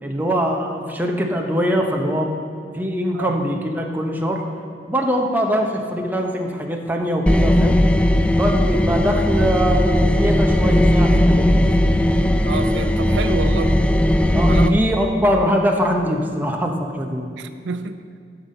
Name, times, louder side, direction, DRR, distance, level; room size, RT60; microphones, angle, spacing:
voice 1, 0.0-2.3 2.7-4.4 4.9-7.8 8.3-11.7 14.3-17.3, equal, 10° right, 1 dB, 0.8 m, -22 dB
sound 1, 7.3-14.7, left 1 dB, 5° left, 0.3 m, -17 dB
voice 2, 12.4-13.8 14.5-14.8 15.0-15.1 17.4-18.0, right 4 dB, 80° right, 10 dB, 0.4 m, -28 dB
12.0 x 5.9 x 5.3 m, 2.3 s
head